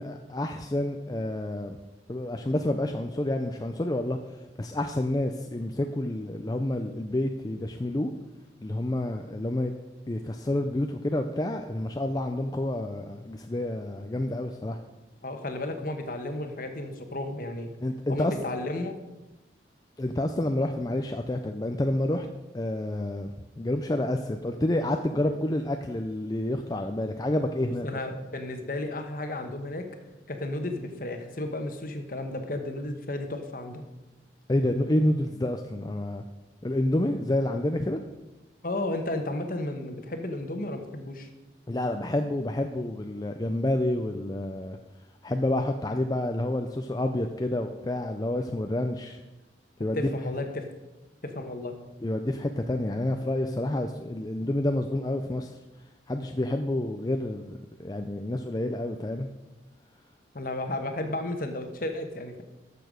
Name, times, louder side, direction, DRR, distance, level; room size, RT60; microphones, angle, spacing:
voice 1, 0.0-1.8 2.1-8.1 8.6-9.7 10.1-14.8 17.8-18.3 20.0-22.3 22.5-27.9 34.5-36.2 36.6-38.0 41.7-44.8 45.2-49.2 49.8-50.3 52.0-55.6 56.1-59.3, left 1 dB, 20° left, 5 dB, 0.4 m, -29 dB
voice 2, 15.2-17.7 18.1-19.0 27.8-29.9 30.3-33.8 38.6-41.3 49.9-50.7 51.2-51.8 60.3-62.4, left 1 dB, 50° left, 6 dB, 1.1 m, -33 dB
12.5 x 6.8 x 5.1 m, 1.1 s
head